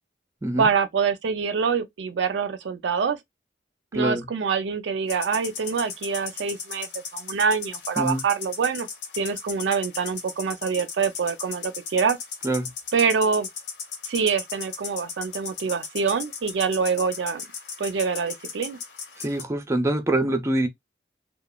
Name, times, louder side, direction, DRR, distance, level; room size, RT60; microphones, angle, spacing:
voice 1, 0.6-3.2 3.9-8.9 9.1-12.2 12.9-13.5 14.1-17.4 17.8-18.8, right 5 dB, 90° right, 0.4 m, -25 dB
voice 2, 3.9-4.3 8.0-8.2 12.4-12.7 19.2-20.7, right 1 dB, 15° right, 0.4 m, -24 dB
warrnambool sprinkler insect, 5.1-19.4, left 6 dB, 75° left, 1.0 m, -37 dB
3.0 x 2.1 x 2.2 m
head